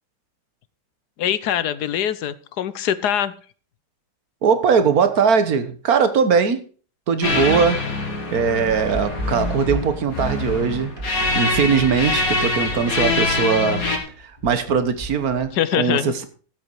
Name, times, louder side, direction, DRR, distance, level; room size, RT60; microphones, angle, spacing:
voice 1, 1.2-3.3 15.5-16.1, left 10 dB, 70° left, 1.2 m, -23 dB
voice 2, 4.4-6.6 7.1-7.9 8.3-11.0 11.3-13.8 14.2-16.3, right 6 dB, 55° right, 1.7 m, -20 dB
sound 1, 7.2-14.0, left 3 dB, 50° left, 2.6 m, -24 dB
sound 2, 8.7-15.5, equal, 30° right, 2.6 m, -34 dB
14.0 x 8.1 x 4.7 m
omnidirectional pair, 2.0 m